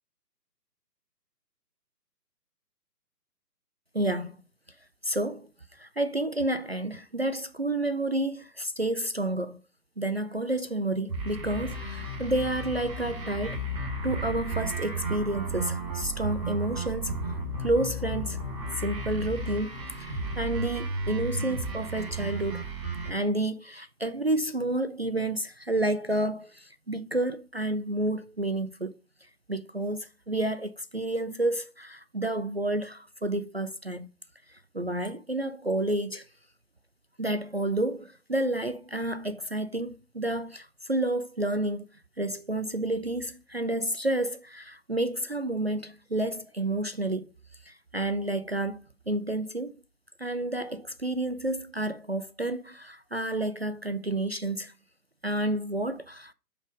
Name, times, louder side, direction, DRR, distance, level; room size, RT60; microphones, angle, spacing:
voice 1, 3.9-4.3 5.0-5.5 5.8-9.6 10.0-13.6 14.0-17.2 17.6-18.4 18.8-22.7 23.1-28.9 29.5-34.1 34.5-36.2 37.2-41.8 42.2-47.3 47.6-49.8 50.2-54.7 55.2-56.3, right 1 dB, 40° right, 0.4 m, -30 dB
sound 1, 11.1-23.1, right 2 dB, 20° right, 3.0 m, -33 dB
5.5 x 5.3 x 5.1 m
figure-of-eight pair, 145°, 49 cm